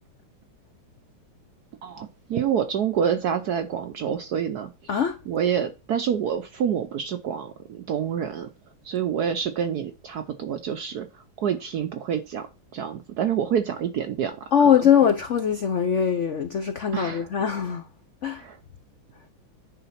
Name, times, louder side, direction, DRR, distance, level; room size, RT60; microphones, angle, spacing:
voice 1, 1.8-4.9 5.3-8.5 8.8-14.7 16.9-17.3 18.4-18.6, right 8 dB, 70° right, 0.9 m, -27 dB
voice 2, 4.9-5.2 14.5-17.8 18.2-18.4, left 8 dB, 80° left, 0.6 m, -21 dB
9.8 x 3.8 x 5.7 m
omnidirectional pair, 2.3 m